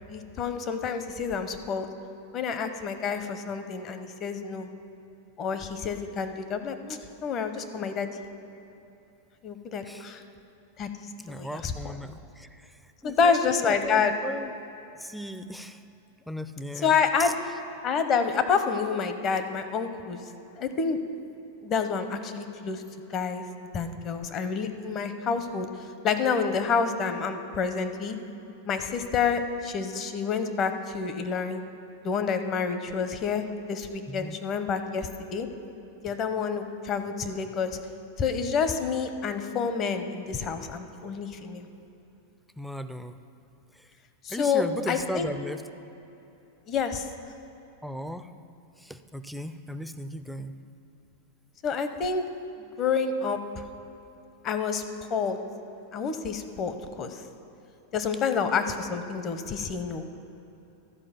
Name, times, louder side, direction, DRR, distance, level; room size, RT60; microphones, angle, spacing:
voice 1, 0.1-1.9 2.3-4.7 5.4-8.1 9.4-10.2 10.8-11.9 13.0-14.1 16.8-17.3 17.8-20.2 20.5-21.0 21.6-22.8 23.1-23.4 23.7-28.2 28.7-31.6 32.0-35.5 36.0-37.8 38.2-41.7 44.2-45.3 46.7-47.1 51.6-52.2 52.6-53.7 54.4-54.8 55.1-55.4 55.9-57.2 57.9-60.1, left 5 dB, 35° left, 9 dB, 0.7 m, -28 dB
voice 2, 11.2-14.5 15.0-15.8 16.3-17.3 34.1-34.4 42.6-43.2 43.8-43.9 44.3-45.6 47.8-48.3 48.8-50.5, equal, ahead, 9 dB, 0.4 m, -37 dB
13.0 x 4.9 x 5.8 m, 2.8 s
hypercardioid pair, 130°, 0 cm